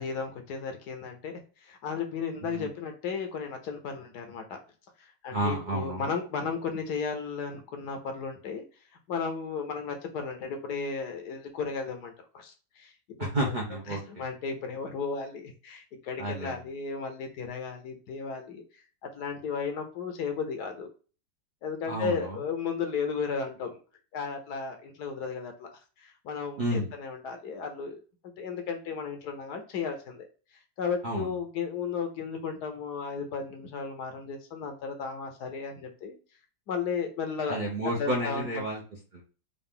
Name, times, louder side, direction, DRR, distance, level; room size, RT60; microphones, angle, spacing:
voice 1, 0.0-4.4 5.2-8.6 9.1-12.9 13.2-13.3 13.9-18.6 19.1-20.9 21.6-23.8 24.1-25.7 26.0-28.0 28.4-30.3 30.8-36.2 36.7-37.6 38.0-38.6, left 5 dB, 70° left, 4 dB, 1.1 m, -34 dB
voice 2, 5.3-6.1 13.2-14.2 16.2-16.7 21.9-22.4 26.6-26.9 31.0-31.4 37.5-38.8 39.1-39.2, right 1 dB, 55° right, -3 dB, 0.5 m, -31 dB
3.8 x 2.4 x 3.6 m, 0.36 s
omnidirectional pair, 2.0 m